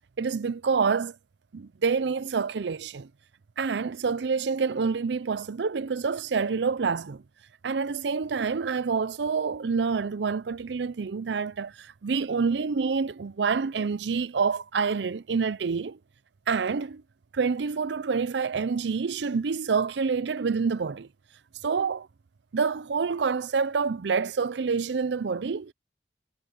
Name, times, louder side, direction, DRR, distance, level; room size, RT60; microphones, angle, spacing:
voice 1, 0.2-1.2 1.5-3.1 3.6-7.2 7.6-16.0 16.5-17.0 17.3-21.1 21.6-22.1 22.5-25.7, right 5 dB, 85° right, 0.5 m, -27 dB
head